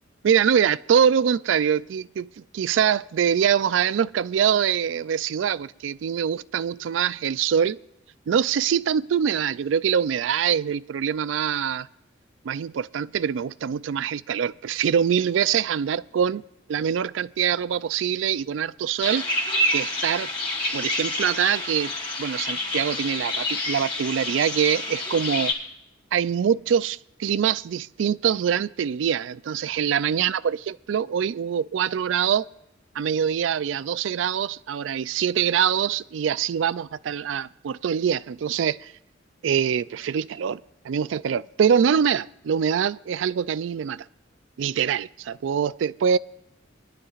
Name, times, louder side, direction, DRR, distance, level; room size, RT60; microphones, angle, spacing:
voice 1, 0.2-7.8 8.3-11.9 12.4-16.4 16.7-19.3 19.7-20.3 20.7-21.9 22.2-25.5 26.1-32.4 33.0-38.9 39.4-44.1 44.6-46.2, right 8 dB, 75° right, 0.3 m, -24 dB
sound 1, 19.0-25.5, left 1 dB, 25° left, 2.7 m, -28 dB
21.5 x 12.5 x 2.4 m
head